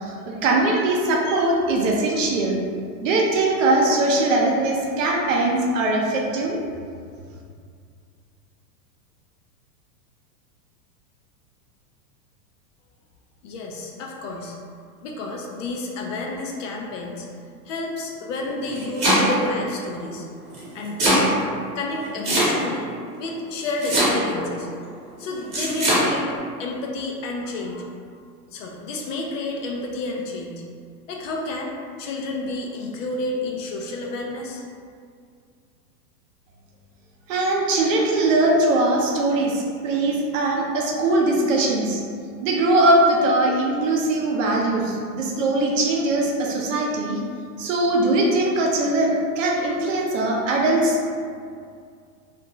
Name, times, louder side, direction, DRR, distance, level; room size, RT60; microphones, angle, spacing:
voice 1, 0.0-2.6 3.0-6.6 37.3-42.0 42.4-47.2 47.6-51.0, right 2 dB, 50° right, -1 dB, 0.5 m, -21 dB
voice 2, 13.4-14.6 15.0-17.3 17.6-20.3 20.7-21.4 21.7-24.7 25.2-27.9 28.5-30.6 31.1-34.6, left 2 dB, 55° left, 0 dB, 0.5 m, -30 dB
Domestic sounds home sounds, 18.5-19.5 20.5-21.3 22.2-22.9 23.8-24.4 25.5-26.0, right 1 dB, 25° right, 1.1 m, -20 dB
2.5 x 2.2 x 2.9 m, 2.2 s
hypercardioid pair, 130°, 49 cm